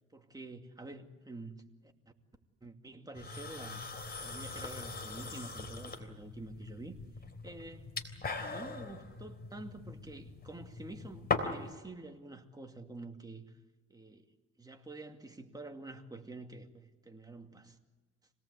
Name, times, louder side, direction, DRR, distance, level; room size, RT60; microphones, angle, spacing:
voice 1, 0.1-1.9 2.6-3.9 4.2-7.0 7.4-7.9 8.4-13.5 13.9-14.3 14.6-17.8, right 2 dB, 10° right, 4 dB, 2.5 m, -48 dB
sound 1, 3.2-11.8, left 3 dB, 30° left, 3.5 m, -40 dB
26.5 x 18.5 x 8.3 m, 1.3 s
cardioid pair, 90°, 30 cm